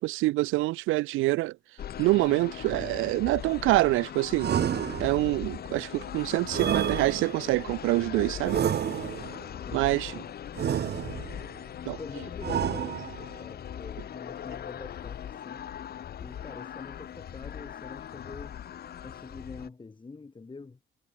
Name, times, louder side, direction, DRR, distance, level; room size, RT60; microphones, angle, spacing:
voice 1, 0.0-1.5 2.0-4.5 5.0-8.6 9.7-10.1 11.9-12.0, right 19 dB, 90° right, 0.4 m, -26 dB
sound 1, 1.8-19.7, left 10 dB, 50° left, 0.8 m, -40 dB
sound 2, 4.4-5.4 6.5-7.6 8.5-9.4 10.6-11.5 12.4-13.4, right 10 dB, 55° right, 1.1 m, -30 dB
voice 2, 9.6-10.3 12.0-15.7 16.2-18.6 19.0-20.8, left 4 dB, 25° left, 2.4 m, -45 dB
cardioid pair, 90°, 20 cm